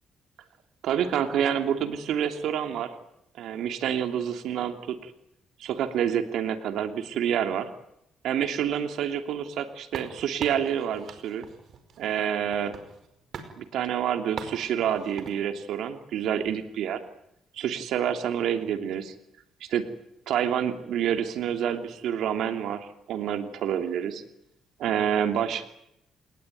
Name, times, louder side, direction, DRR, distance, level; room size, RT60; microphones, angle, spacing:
voice 1, 0.8-2.9 3.4-5.1 5.6-7.7 8.2-11.5 12.0-12.8 13.6-17.0 17.5-19.1 19.6-19.8 20.3-24.2 24.8-25.7, right 9 dB, 80° right, 7 dB, 3.0 m, -28 dB
sound 1, 9.9-13.1 13.3-13.5 14.4-15.4, right 6 dB, 65° right, 5.0 m, -42 dB
28.5 x 20.0 x 9.4 m, 0.80 s
cardioid pair, 90°, 0 cm